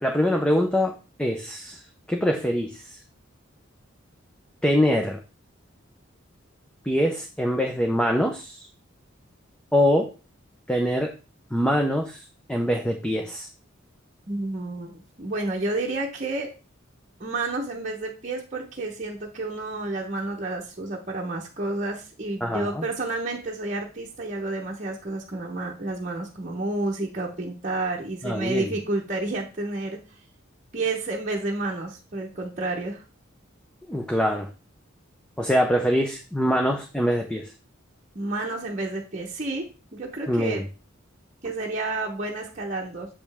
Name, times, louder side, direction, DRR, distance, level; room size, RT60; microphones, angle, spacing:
voice 1, 0.0-1.8 2.1-3.0 4.6-5.2 6.8-8.7 9.7-10.1 10.7-11.1 11.5-12.2 12.5-13.5 22.4-22.9 28.2-28.7 33.9-34.5 35.4-37.5 40.3-40.6, equal, 5° left, 2 dB, 0.6 m, -24 dB
voice 2, 14.3-16.5 17.2-30.0 30.7-33.0 38.1-39.7 39.9-40.6 41.4-43.1, right 2 dB, 35° right, -2 dB, 0.9 m, -30 dB
7.2 x 5.2 x 3.5 m, 0.32 s
head